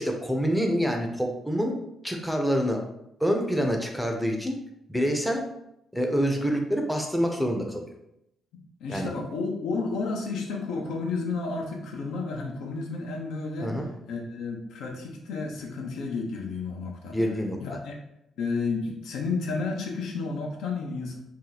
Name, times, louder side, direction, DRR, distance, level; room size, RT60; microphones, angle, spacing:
voice 1, 0.0-1.8 2.0-2.8 3.2-4.5 4.9-5.4 5.9-7.8 8.9-9.1 13.6-13.9 17.1-17.6, equal, ahead, 2 dB, 0.6 m, -26 dB
voice 2, 8.8-13.8 14.1-17.2 17.6-18.0 18.4-21.2, left 4 dB, 85° left, 1 dB, 0.7 m, -31 dB
2.8 x 2.3 x 3.9 m, 0.82 s
cardioid pair, 90°, 0 cm